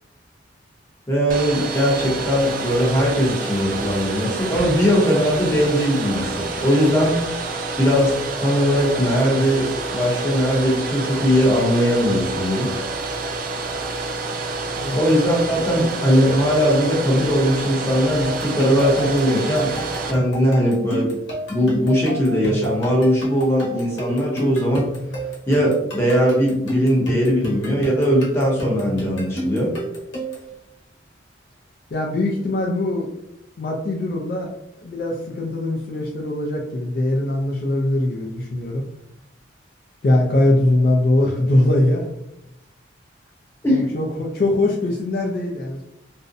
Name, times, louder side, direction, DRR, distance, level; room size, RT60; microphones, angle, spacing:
voice 1, 1.1-7.2 7.8-8.1 8.4-9.7 9.9-12.7 14.9-19.7 20.1-21.1 21.5-24.9 25.5-29.7 43.6-43.9, equal, 15° left, -4 dB, 0.7 m, -19 dB
Domestic sounds home sounds, 1.3-20.1, right 3 dB, 45° right, 0.3 m, -28 dB
sound 1, 18.2-30.5, equal, 70° left, 0.9 m, -29 dB
voice 2, 31.9-33.1 33.6-34.5 34.8-38.8 40.0-42.1 43.7-45.8, left 1 dB, 50° left, -1 dB, 0.3 m, -21 dB
2.5 x 2.0 x 2.4 m, 0.83 s
head